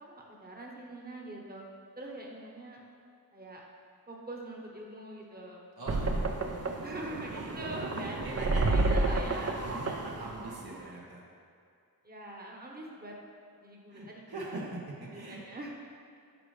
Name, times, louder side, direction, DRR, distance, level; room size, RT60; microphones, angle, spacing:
voice 1, 0.0-1.6 2.0-2.8 3.3-3.6 4.1-5.7 6.8-8.2 8.7-9.6 10.2-10.8 12.0-13.1 13.6-14.5 15.1-15.7, right 1 dB, 25° right, -2 dB, 1.1 m, -43 dB
voice 2, 5.8-6.3 7.3-7.5 8.0-9.1 9.6-11.2 13.9-14.8 15.1-15.4, right 2 dB, 85° right, -5 dB, 1.4 m, -41 dB
sound 1, 5.9-10.9, right 2 dB, 40° right, 0.6 m, -31 dB
9.5 x 5.1 x 3.3 m, 2.3 s
wide cardioid pair, 50°, 36 cm